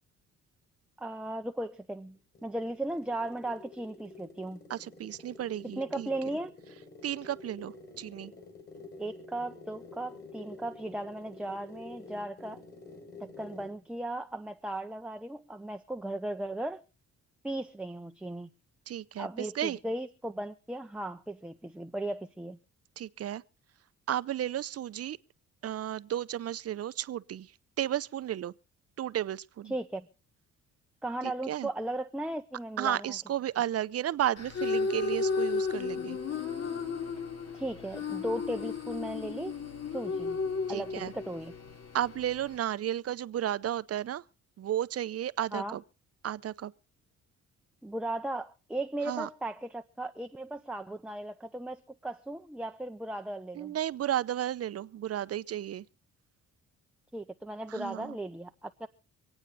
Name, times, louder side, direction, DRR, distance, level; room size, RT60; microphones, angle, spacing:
voice 1, 1.0-4.6 5.8-6.5 9.0-12.6 13.2-16.8 17.4-18.5 19.2-22.6 29.7-30.1 31.0-33.2 37.5-39.6 39.9-40.4 40.7-41.5 45.5-45.8 47.8-53.8 57.1-58.9, right 1 dB, 5° right, 0.7 m, -36 dB
sound 1, 2.1-13.8, left 3 dB, 35° left, 5.7 m, -49 dB
voice 2, 4.7-6.1 7.0-8.3 18.9-19.8 23.0-23.4 24.1-25.2 25.6-27.5 27.8-28.5 29.0-29.7 31.2-31.7 32.8-36.2 40.7-41.1 41.9-44.2 44.6-45.8 46.2-46.7 49.1-49.3 53.6-55.8 57.7-58.2, right 11 dB, 50° right, 0.6 m, -33 dB
sound 2, 34.4-42.6, left 4 dB, 60° left, 2.7 m, -34 dB
25.5 x 8.9 x 4.0 m
cardioid pair, 90°, 30 cm